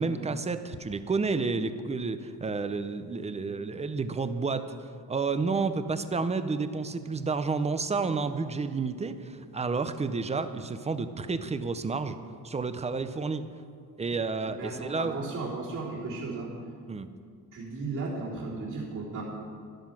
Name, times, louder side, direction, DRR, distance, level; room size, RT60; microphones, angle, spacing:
voice 1, 0.0-4.7 5.1-12.2 12.4-13.4 14.0-15.1 16.9-17.1, right 4 dB, 20° right, 11 dB, 0.5 m, -30 dB
voice 2, 14.6-16.5 17.5-19.2, right 3 dB, 55° right, -7 dB, 3.7 m, -35 dB
13.0 x 12.0 x 6.0 m, 2.2 s
wide cardioid pair, 170°, 37 cm